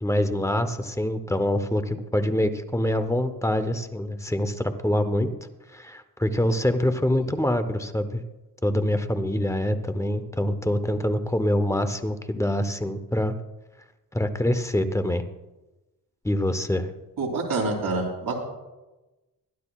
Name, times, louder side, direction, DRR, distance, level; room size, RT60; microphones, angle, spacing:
voice 1, 0.0-5.3 5.7-8.2 8.6-13.3 14.1-15.2 16.2-16.9, left 1 dB, 10° left, 10 dB, 0.7 m, -25 dB
voice 2, 17.2-18.4, right 3 dB, 85° right, -1 dB, 3.0 m, -27 dB
22.0 x 12.0 x 2.3 m, 1.1 s
wide cardioid pair, 150°, 36 cm